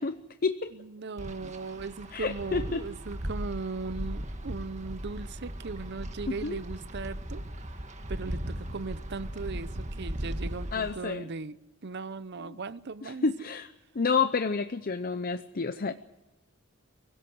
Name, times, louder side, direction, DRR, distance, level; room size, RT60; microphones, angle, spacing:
voice 1, 0.0-0.7 2.1-2.8 6.3-6.6 10.7-11.3 12.5-12.6 13.0-13.7 13.9-15.9, left 4 dB, 45° left, 0.7 m, -29 dB
voice 2, 0.7-7.4 8.1-13.2, right 4 dB, 55° right, 0.7 m, -38 dB
Wind, 1.2-10.9, equal, 35° right, 1.6 m, -37 dB
24.0 x 16.5 x 7.8 m
head